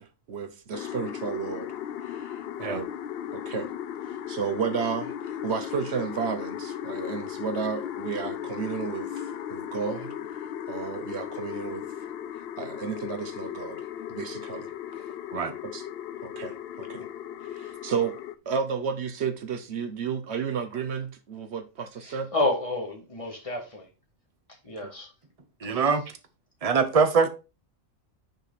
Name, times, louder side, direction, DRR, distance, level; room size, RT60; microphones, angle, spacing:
voice 1, 0.0-1.7 2.0-2.9 3.3-3.7 4.3-10.1 10.7-11.8 12.6-13.8 14.1-14.7 15.6-15.9 16.2-17.1 17.5-18.2 18.5-22.3 24.8-24.9 25.7-25.8, right 6 dB, 60° right, 1.0 m, -32 dB
sound 1, 0.7-18.4, left 10 dB, 65° left, 0.7 m, -36 dB
voice 2, 22.0-23.9 24.6-25.1 25.7-25.8, left 2 dB, 25° left, 2.1 m, -30 dB
voice 3, 25.6-26.0 26.6-27.3, right 5 dB, 30° right, 0.9 m, -23 dB
6.4 x 4.8 x 4.1 m
omnidirectional pair, 1.3 m